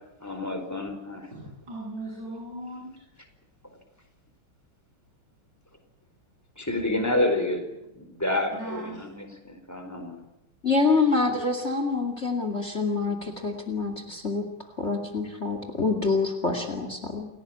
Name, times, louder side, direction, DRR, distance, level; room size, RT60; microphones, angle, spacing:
voice 1, 0.2-1.3 6.6-10.2, left 1 dB, 5° left, 6 dB, 4.3 m, -29 dB
voice 2, 1.3-3.0 8.5-9.0, right 1 dB, 55° right, -2 dB, 8.6 m, -38 dB
voice 3, 10.6-14.5 14.8-17.3, left 4 dB, 30° left, 7 dB, 2.7 m, -26 dB
29.5 x 17.5 x 8.8 m, 0.88 s
omnidirectional pair, 2.3 m